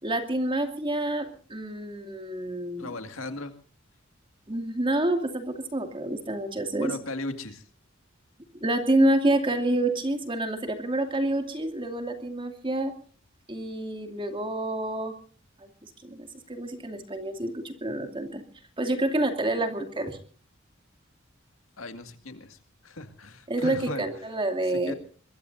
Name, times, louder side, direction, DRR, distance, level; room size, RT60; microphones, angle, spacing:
voice 1, 0.0-2.9 4.5-7.0 8.6-12.9 13.5-15.1 15.6-18.4 18.8-20.2 23.5-24.9, right 1 dB, 25° right, 6 dB, 2.6 m, -28 dB
voice 2, 2.8-3.6 6.8-7.7 21.8-24.1 24.7-24.9, left 2 dB, 80° left, 7 dB, 2.1 m, -37 dB
23.0 x 22.5 x 2.7 m, 0.42 s
head